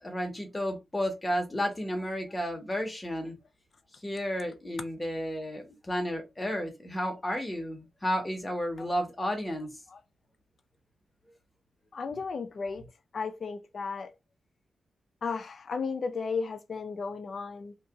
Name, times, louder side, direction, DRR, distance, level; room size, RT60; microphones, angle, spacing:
voice 1, 0.0-3.4 4.0-9.7, equal, 15° left, 1.0 m, -32 dB
voice 2, 11.9-12.8 13.1-14.1 15.2-17.8, left 5 dB, 45° left, 0.5 m, -34 dB
2.9 x 2.8 x 3.5 m
wide cardioid pair, 165°, 0 cm